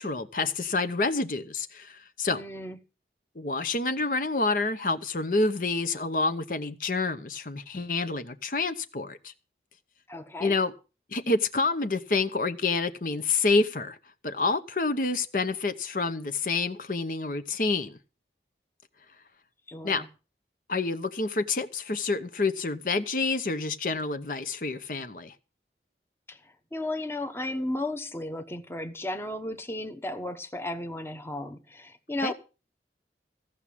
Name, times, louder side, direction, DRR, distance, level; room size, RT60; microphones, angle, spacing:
voice 1, 0.0-2.4 3.4-9.3 10.4-10.7 11.1-14.0 14.2-18.0 19.8-20.0 20.7-25.3 32.2-32.3, left 3 dB, 50° left, 0.9 m, -28 dB
voice 2, 2.3-2.8 10.1-10.5 19.7-20.1 26.3-32.3, left 1 dB, 15° left, 1.0 m, -34 dB
15.5 x 6.2 x 8.5 m
head